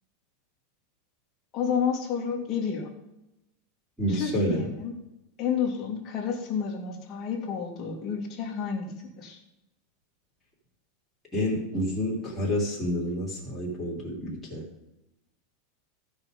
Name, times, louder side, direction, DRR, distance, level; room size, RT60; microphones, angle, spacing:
voice 1, 1.5-2.9 4.1-4.9 5.4-8.9 9.2-9.4, left 7 dB, 25° left, -1 dB, 2.1 m, -30 dB
voice 2, 4.0-4.6 11.3-14.6, equal, 5° left, -7 dB, 3.2 m, -29 dB
15.5 x 5.6 x 5.2 m, 0.92 s
supercardioid pair, 175°, 0 cm